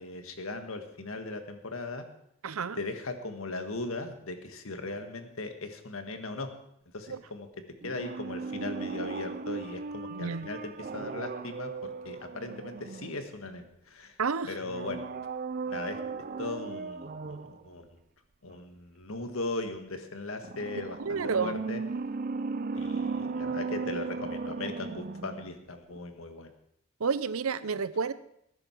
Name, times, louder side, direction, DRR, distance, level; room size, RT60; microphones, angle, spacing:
voice 1, 0.0-2.1 2.8-6.5 6.9-7.5 7.8-14.2 14.5-15.0 15.6-16.0 16.4-18.0 18.4-21.8 22.7-26.5, left 2 dB, 75° left, 7 dB, 1.7 m, -38 dB
voice 2, 2.4-2.8 7.1-7.2 10.1-10.5 14.2-14.5 21.0-21.6 27.0-28.1, right 5 dB, 85° right, 15 dB, 0.7 m, -30 dB
sound 1, 7.8-13.6 14.6-17.6 20.4-25.6 25.9-26.0, right 4 dB, 40° right, 0.4 m, -36 dB
19.5 x 10.5 x 4.6 m, 0.73 s
head